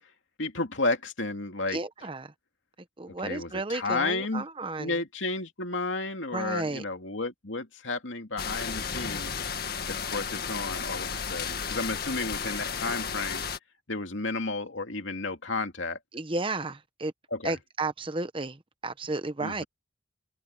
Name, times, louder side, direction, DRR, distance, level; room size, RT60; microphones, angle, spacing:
voice 1, 0.4-1.8 3.2-4.4 4.8-9.3 9.9-13.4 13.9-16.0 17.3-17.6 19.4-19.6, left 3 dB, 80° left, 2.6 m, -32 dB
voice 2, 1.7-2.3 3.0-5.0 6.3-6.8 16.1-17.1 17.4-19.6, right 2 dB, 25° right, 1.0 m, -33 dB
sound 1, 8.4-13.6, left 6 dB, 55° left, 2.0 m, -33 dB
head